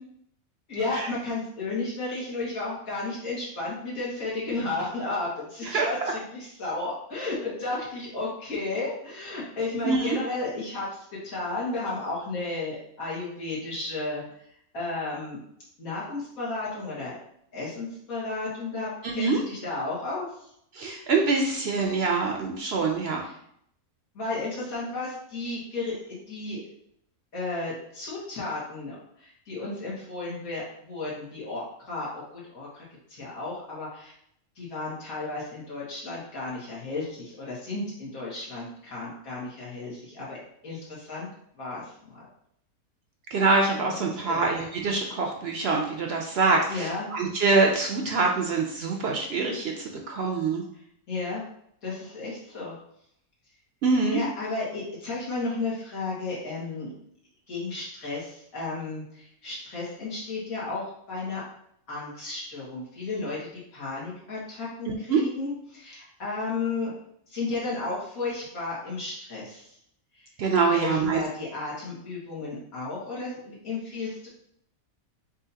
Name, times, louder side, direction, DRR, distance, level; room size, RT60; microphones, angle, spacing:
voice 1, 0.7-15.4 15.8-17.1 17.5-20.5 23.2-23.3 24.1-26.6 27.3-32.8 33.1-34.1 34.6-40.4 40.6-41.3 41.5-42.2 43.8-44.4 46.7-47.1 50.7-51.4 51.8-52.7 54.1-56.9 57.5-61.4 61.9-66.9 67.3-69.8 70.1-70.3 70.7-74.3, left 3 dB, 85° left, -7 dB, 2.2 m, -33 dB
voice 2, 9.8-10.2 19.0-19.4 20.8-23.2 43.3-50.6 53.8-54.2 64.9-65.2 70.4-71.2, right 4 dB, 60° right, 1 dB, 0.7 m, -25 dB
6.2 x 2.7 x 2.8 m, 0.70 s
omnidirectional pair, 1.5 m